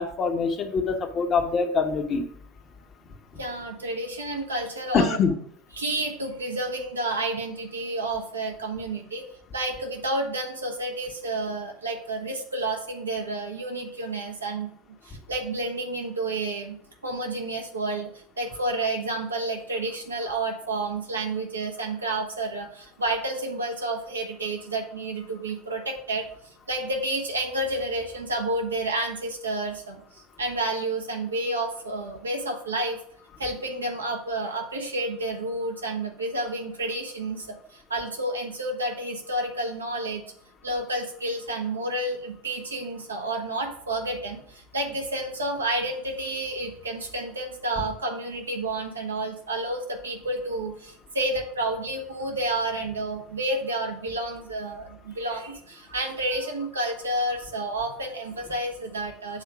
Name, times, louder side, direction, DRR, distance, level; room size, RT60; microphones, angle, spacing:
voice 1, 0.0-2.2 4.9-5.3, left 5 dB, 40° left, 5 dB, 1.1 m, -24 dB
voice 2, 3.4-5.2 5.7-9.2 9.5-14.7 15.0-16.8 17.0-18.1 18.4-26.3 26.7-33.0 33.4-40.2 40.6-59.4, right 2 dB, 90° right, 1 dB, 1.3 m, -30 dB
7.3 x 3.7 x 5.9 m, 0.66 s
hypercardioid pair, 80°, 0 cm